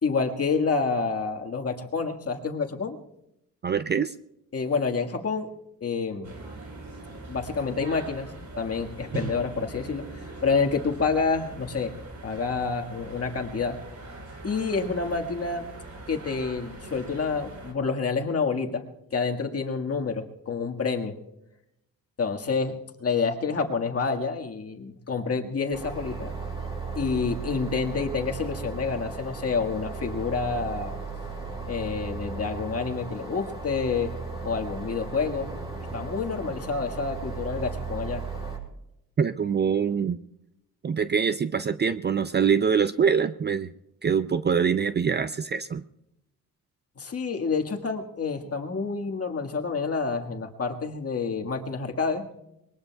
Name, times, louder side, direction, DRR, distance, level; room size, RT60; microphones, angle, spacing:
voice 1, 0.0-3.0 4.5-5.5 5.8-6.3 7.3-11.9 12.2-13.8 14.4-15.7 16.1-18.8 19.1-21.2 22.2-26.3 27.0-31.0 31.7-34.1 34.4-35.5 35.9-38.2 47.0-52.3, left 4 dB, 45° left, 3 dB, 1.7 m, -28 dB
voice 2, 3.6-4.1 39.2-40.2 40.8-43.7 44.0-45.8, right 6 dB, 30° right, 12 dB, 0.5 m, -24 dB
sound 1, 6.2-17.7, right 2 dB, 55° right, 4.2 m, -41 dB
sound 2, 25.7-38.6, right 4 dB, 15° right, 6.5 m, -36 dB
24.0 x 21.0 x 2.3 m, 0.84 s
cardioid pair, 80°, 35 cm